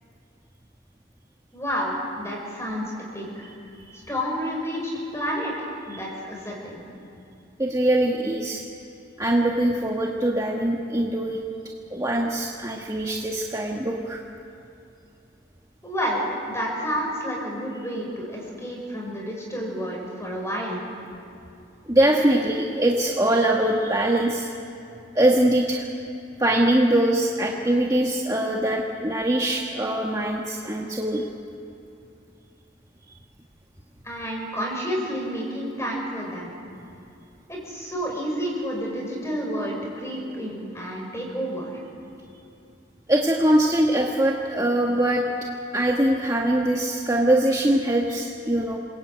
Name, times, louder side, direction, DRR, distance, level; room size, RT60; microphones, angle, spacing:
voice 1, 1.5-2.9 3.1-3.5 4.1-6.8 15.8-20.8 34.0-36.5 37.5-41.8, equal, 15° left, -2 dB, 6.2 m, -30 dB
voice 2, 7.6-8.6 9.2-11.4 11.9-14.2 21.9-24.5 25.1-25.9 26.4-31.2 43.1-45.2 45.7-48.8, right 1 dB, 15° right, -1 dB, 1.5 m, -22 dB
28.0 x 21.5 x 9.0 m, 2.7 s
head